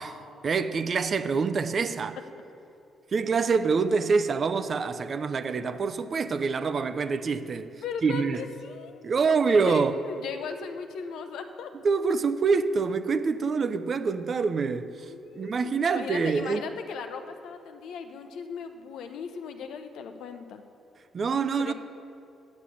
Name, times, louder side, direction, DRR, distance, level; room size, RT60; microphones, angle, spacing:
voice 1, 0.0-2.2 3.1-7.7 8.0-8.4 9.0-10.0 11.8-16.6 21.1-21.7, right 5 dB, 45° right, 0.6 m, -26 dB
voice 2, 7.8-9.0 9.5-11.7 15.1-20.6 21.6-21.7, left 6 dB, 80° left, 0.8 m, -38 dB
9.4 x 6.4 x 8.5 m
cardioid pair, 90°, 0 cm